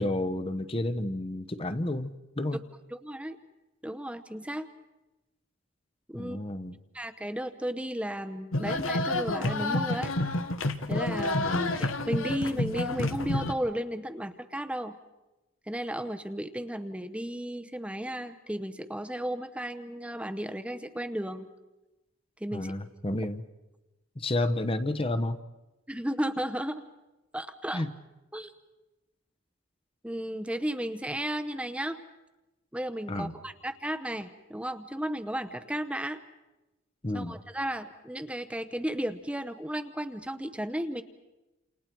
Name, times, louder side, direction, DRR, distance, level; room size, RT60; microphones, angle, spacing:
voice 1, 0.0-2.6 6.1-6.8 11.4-11.8 22.5-23.4 24.2-25.4 27.7-27.9 33.1-33.4 37.0-37.4, left 1 dB, 30° left, 10 dB, 0.9 m, -31 dB
voice 2, 2.9-3.4 3.8-4.7 6.1-6.4 6.9-10.1 10.9-15.0 15.7-21.5 22.4-22.7 25.9-26.8 27.3-27.8 28.3-28.5 30.0-32.0 32.7-36.2 37.1-41.0, right 1 dB, 5° right, 9 dB, 0.8 m, -34 dB
sound 1, 8.5-13.5, left 2 dB, 80° left, 1.3 m, -29 dB
29.0 x 28.5 x 4.6 m, 1.0 s
head